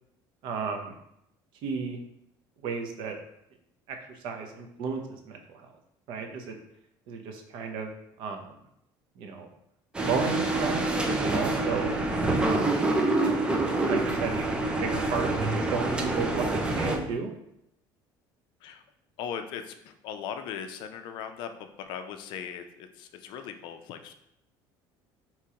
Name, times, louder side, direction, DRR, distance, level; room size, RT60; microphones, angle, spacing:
voice 1, 0.4-0.9 1.6-2.0 2.6-3.2 3.9-5.7 6.1-6.6 7.1-7.9 8.2-8.5 9.2-9.5 10.0-12.0 12.4-12.8 13.2-13.4 13.8-14.4 14.8-17.3, right 5 dB, 60° right, 4 dB, 0.6 m, -33 dB
sound 1, 9.9-17.0, right 2 dB, 10° right, 0.4 m, -26 dB
voice 2, 19.2-24.1, left 8 dB, 60° left, 8 dB, 0.4 m, -39 dB
4.8 x 2.9 x 2.8 m, 0.78 s
cardioid pair, 160°, 9 cm